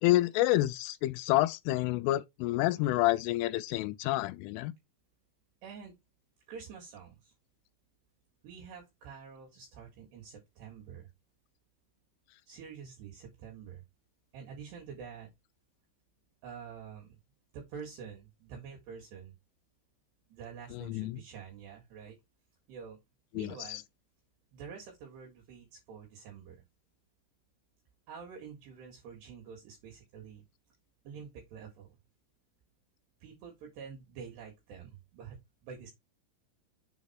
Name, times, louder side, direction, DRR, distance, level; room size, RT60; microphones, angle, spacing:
voice 1, 0.0-4.7 20.7-21.2 23.3-23.8, left 16 dB, 90° left, 3.1 m, -29 dB
voice 2, 5.6-6.0 6.5-7.3 8.4-11.1 12.5-13.8 14.3-15.3 16.4-17.2 17.5-19.3 20.3-22.2 22.7-23.0 23.3-23.8 24.5-26.7 28.1-30.4 31.1-32.0 33.2-35.9, right 6 dB, 65° right, 3.7 m, -47 dB
7.3 x 4.1 x 4.4 m
omnidirectional pair, 5.6 m